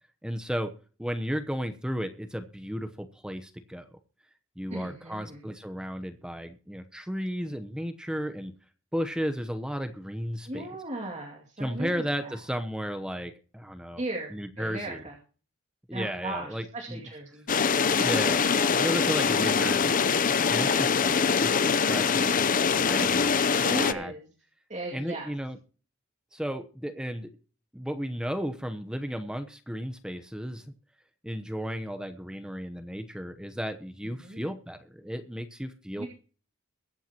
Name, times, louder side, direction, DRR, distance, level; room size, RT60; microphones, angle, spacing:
voice 1, 0.2-0.7 1.0-3.9 4.6-8.5 8.9-10.7 11.6-14.0 14.3-15.0 15.9-17.0 17.9-18.3 18.8-20.0 20.5-24.1 24.9-25.6 26.3-27.3 27.7-30.7 31.2-36.1, equal, 5° right, 8 dB, 0.8 m, -34 dB
voice 2, 4.7-5.4 10.5-12.4 14.0-15.2 15.9-17.5 18.0-18.1 20.6-20.9 23.0-23.1 23.6-24.3 24.7-25.3 34.0-34.4 36.0-36.1, right 1 dB, 35° right, 0 dB, 2.3 m, -37 dB
sound 1, 17.5-23.9, left 6 dB, 40° left, 0.6 m, -24 dB
22.5 x 9.0 x 2.9 m, 0.39 s
head